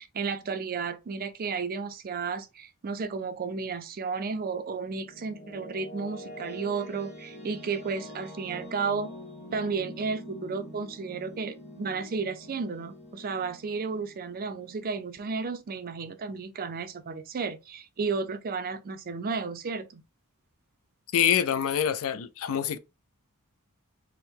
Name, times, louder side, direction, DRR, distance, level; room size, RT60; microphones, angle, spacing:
voice 1, 0.0-9.1 9.5-20.0, right 5 dB, 40° right, 0.4 m, -33 dB
sound 1, 4.5-15.6, equal, 30° left, 1.2 m, -45 dB
voice 2, 21.1-22.8, left 9 dB, 65° left, 0.4 m, -25 dB
3.5 x 2.1 x 4.3 m
head